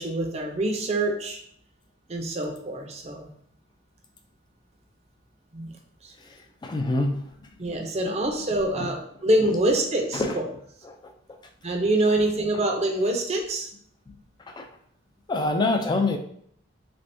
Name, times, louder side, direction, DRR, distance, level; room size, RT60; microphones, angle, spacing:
voice 1, 0.0-1.4 2.1-3.3 5.5-5.7 6.0-6.1 7.6-10.4 11.6-13.7, right 1 dB, 30° right, 2 dB, 0.5 m, -25 dB
voice 2, 6.6-7.2 7.7-7.8 8.8-8.9 10.1-10.4 10.9-11.0 14.5-14.7 15.3-16.2, left 2 dB, 20° left, 3 dB, 0.3 m, -25 dB
3.5 x 3.4 x 2.6 m, 0.66 s
head